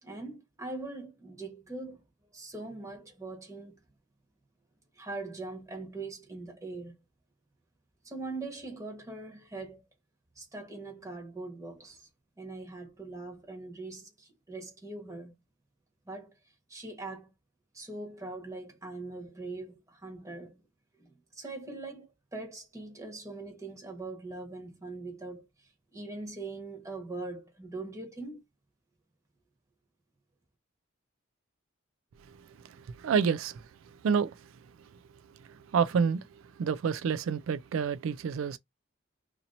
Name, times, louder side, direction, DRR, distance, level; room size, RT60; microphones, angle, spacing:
voice 1, 0.0-2.0 2.3-3.8 5.0-6.9 8.0-9.8 10.4-12.1 12.4-15.3 16.1-16.3 16.7-17.3 17.7-20.6 21.0-22.1 22.3-28.4, right 3 dB, 15° right, 1.1 m, -42 dB
voice 2, 33.0-33.7 34.0-34.3 35.5-36.2 36.6-38.6, right 6 dB, 90° right, 0.3 m, -28 dB
2.8 x 2.7 x 4.0 m
head